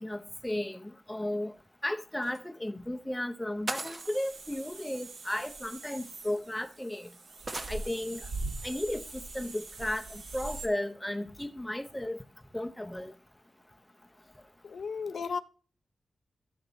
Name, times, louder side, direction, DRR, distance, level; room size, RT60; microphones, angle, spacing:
voice 1, 0.0-1.5 1.8-7.1 7.7-8.3 8.6-9.0 9.3-12.2 12.5-13.1, left 1 dB, 5° left, 0.6 m, -34 dB
sound 1, 2.2-2.4 3.7-4.3 5.5-5.6 6.3-6.4 7.5-7.8, right 2 dB, 30° right, 0.8 m, -37 dB
sound 2, 4.0-10.7, right 3 dB, 75° right, 1.8 m, -42 dB
voice 2, 14.6-15.4, left 5 dB, 65° left, 0.4 m, -34 dB
12.0 x 7.1 x 4.0 m
wide cardioid pair, 150°, 0 cm